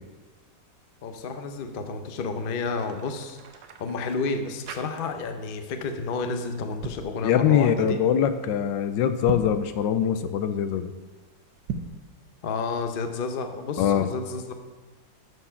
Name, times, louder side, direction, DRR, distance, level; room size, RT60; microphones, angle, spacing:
voice 1, 1.0-8.0 12.4-14.5, left 4 dB, 60° left, 6 dB, 0.5 m, -31 dB
sound 1, 2.6-5.4 5.7-6.0 6.6-7.1 9.1-9.7 11.6-12.1, right 5 dB, 75° right, 1.3 m, -37 dB
voice 2, 7.2-10.9 13.8-14.1, left 9 dB, 75° left, 10 dB, 1.2 m, -23 dB
13.0 x 4.5 x 5.7 m, 1.3 s
omnidirectional pair, 2.0 m